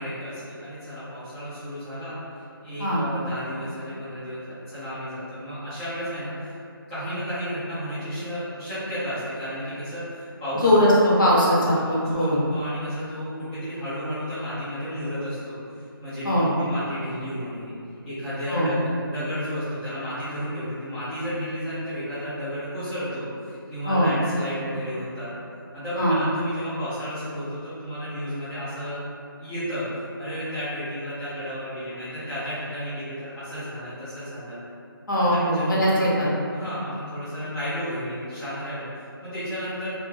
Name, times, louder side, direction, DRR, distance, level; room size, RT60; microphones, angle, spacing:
voice 1, 0.0-2.1 2.6-6.6 6.9-10.7 11.7-15.6 16.0-17.7 18.0-25.3 25.7-29.0 29.4-34.6 35.2-36.1 36.5-39.9, equal, 5° left, -18 dB, 0.4 m, -32 dB
voice 2, 10.6-12.4 16.2-16.5 18.5-18.7 23.9-24.1 26.0-26.2 35.1-36.3, equal, 55° left, -7 dB, 0.8 m, -20 dB
2.2 x 2.1 x 3.1 m, 2.5 s
figure-of-eight pair, 160°, 13 cm